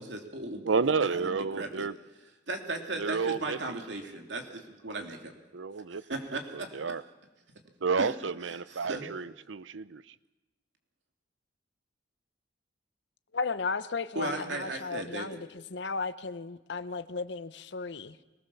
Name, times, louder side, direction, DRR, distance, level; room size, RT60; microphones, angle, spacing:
voice 1, 0.0-1.9 2.5-5.3 6.1-6.7 8.0-8.2 8.4-9.1 14.1-15.3, right 2 dB, 70° right, 3 dB, 3.0 m, -36 dB
voice 2, 0.6-2.0 3.0-3.8 5.5-7.0 7.8-10.1, right 5 dB, 90° right, 17 dB, 0.7 m, -31 dB
voice 3, 13.3-18.2, left 4 dB, 65° left, 13 dB, 0.8 m, -35 dB
25.0 x 19.0 x 7.1 m, 1.1 s
head